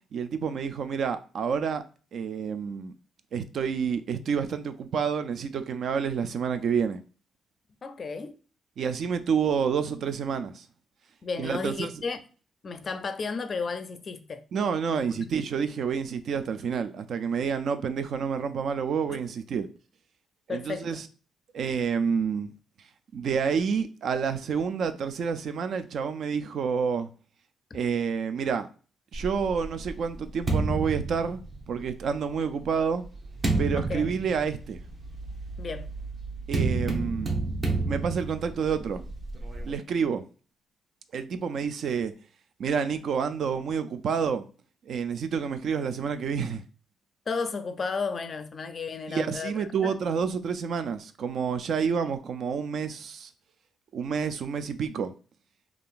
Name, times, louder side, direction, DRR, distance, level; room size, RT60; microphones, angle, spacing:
voice 1, 0.1-1.8 2.1-2.9 3.3-7.0 8.8-10.7 11.4-11.9 14.5-19.7 20.5-21.1 21.5-22.5 23.1-27.1 27.7-28.7 29.1-31.4 31.7-33.0 33.6-34.8 36.5-37.5 37.9-39.0 39.7-40.2 41.1-42.1 42.6-44.5 44.9-46.6 49.1-53.3 53.9-55.1, right 6 dB, 65° right, 0.3 m, -29 dB
voice 2, 7.8-8.4 11.2-12.2 12.6-14.4 14.9-15.3 19.1-19.2 20.5-21.0 33.8-34.1 35.6-35.9 47.3-49.9, left 4 dB, 40° left, 0.4 m, -33 dB
sound 1, 29.1-31.9 32.7-39.7, right 3 dB, 35° right, 0.8 m, -31 dB
3.7 x 2.4 x 2.5 m
cardioid pair, 95°, 0 cm